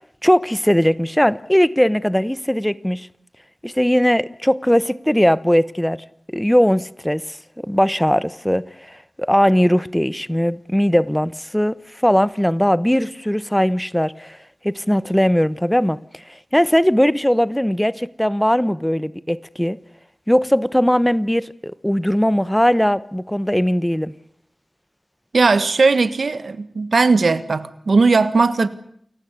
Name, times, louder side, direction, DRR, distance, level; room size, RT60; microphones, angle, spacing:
voice 1, 0.2-3.1 3.6-6.0 6.3-7.4 7.6-14.4 14.6-19.8 20.3-24.1, equal, 5° left, 0.9 m, -19 dB
voice 2, 25.3-28.7, right 4 dB, 85° right, 1.6 m, -17 dB
29.0 x 16.0 x 9.7 m
wide cardioid pair, 80°, 0 cm